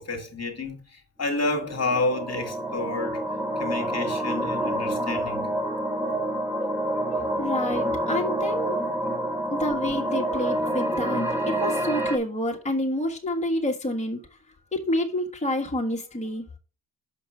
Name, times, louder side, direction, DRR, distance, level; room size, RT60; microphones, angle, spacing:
voice 1, 0.0-3.2 3.6-5.5, left 2 dB, 40° left, 1.8 m, -29 dB
sound 1, 1.5-12.2, right 1 dB, 5° right, 1.4 m, -28 dB
voice 2, 7.4-8.8 9.5-14.2 14.7-16.5, left 1 dB, 15° left, 1.5 m, -28 dB
5.9 x 5.2 x 4.9 m
supercardioid pair, 55°, 39 cm